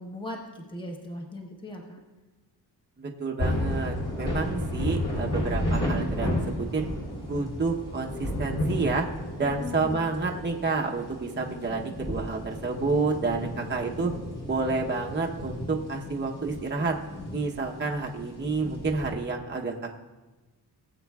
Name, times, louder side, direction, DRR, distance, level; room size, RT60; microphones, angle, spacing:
voice 1, 0.0-2.0 9.4-10.1, left 1 dB, 10° left, 1 dB, 1.1 m, -39 dB
voice 2, 3.0-6.8 7.2-9.1 9.4-14.1 14.5-17.0 17.3-20.0, right 4 dB, 25° right, 0 dB, 0.9 m, -29 dB
sound 1, 3.4-19.1, left 1 dB, 50° left, 3.4 m, -32 dB
19.0 x 7.7 x 2.4 m, 1.2 s
wide cardioid pair, 105°, 40 cm